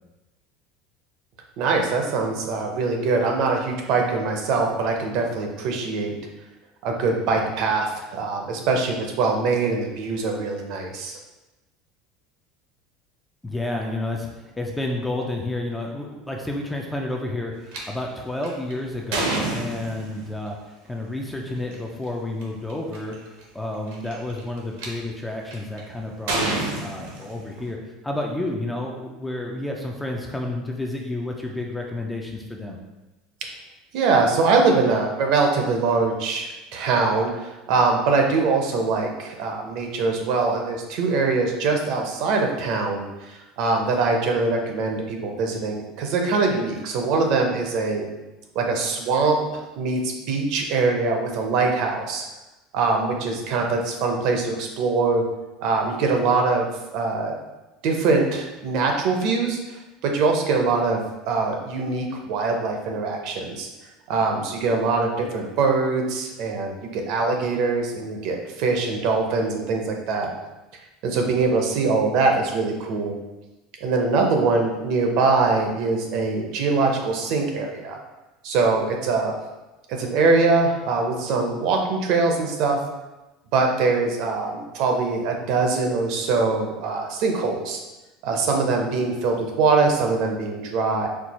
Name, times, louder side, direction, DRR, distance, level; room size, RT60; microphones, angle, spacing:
voice 1, 1.6-6.2 6.8-11.2 33.9-48.1 48.5-52.2 52.7-55.2 55.6-56.7 56.9-57.4 57.8-63.7 64.1-70.3 71.0-73.1 73.8-78.0 78.4-79.4 79.9-82.8 83.5-87.8 88.2-91.1, right 4 dB, 50° right, 2 dB, 0.6 m, -23 dB
voice 2, 13.4-20.6 20.9-23.2 23.5-32.8, left 2 dB, 5° left, 1 dB, 0.4 m, -30 dB
sound 1, 17.7-17.8 18.4-20.3 21.6-21.7 22.4-22.5 22.7-23.1 23.9-24.9 25.5-25.8 26.3-27.7, right 2 dB, 85° right, 1.0 m, -28 dB
4.5 x 2.3 x 4.1 m, 1.1 s
cardioid pair, 165°, 0 cm